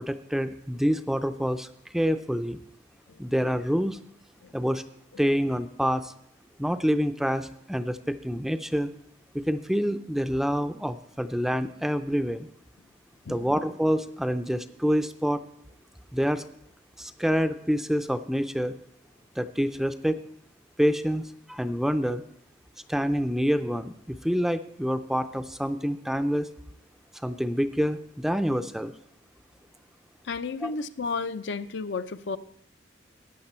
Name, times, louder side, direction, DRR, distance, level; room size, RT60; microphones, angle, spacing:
voice 1, 0.0-1.7 1.9-2.6 3.2-4.0 4.5-4.8 5.2-6.1 6.6-8.9 9.3-12.5 13.3-15.4 16.1-16.4 17.0-18.8 19.4-20.2 20.8-22.2 22.9-26.5 27.2-28.9 30.6-30.7, equal, ahead, 10 dB, 0.4 m, -27 dB
voice 2, 13.3-13.6 30.2-32.4, left 4 dB, 65° left, 11 dB, 0.5 m, -32 dB
14.0 x 9.4 x 4.4 m, 0.71 s
head